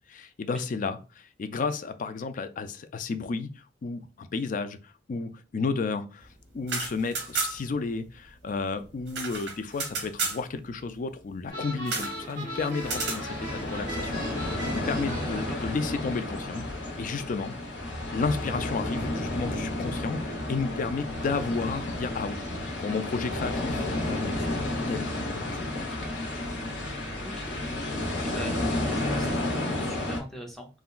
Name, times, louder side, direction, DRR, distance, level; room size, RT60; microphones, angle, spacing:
voice 1, 0.1-1.0 1.4-3.5 3.8-6.3 6.5-16.7 17.0-17.5 18.1-22.4 22.8-24.6 24.9-26.0, left 4 dB, 45° left, 10 dB, 0.3 m, -32 dB
sound 1, 6.5-7.8 8.1-8.2 8.4-10.4 11.9-12.2 12.8-13.2, right 4 dB, 75° right, 0.9 m, -32 dB
sound 2, 11.5-15.7, equal, 45° right, 1.3 m, -38 dB
sound 3, 12.8-30.2, left 1 dB, 85° left, 0.9 m, -31 dB
voice 2, 27.2-27.6 28.2-29.4 29.8-30.7, equal, ahead, 0 dB, 0.6 m, -41 dB
3.7 x 2.2 x 2.4 m, 0.33 s
head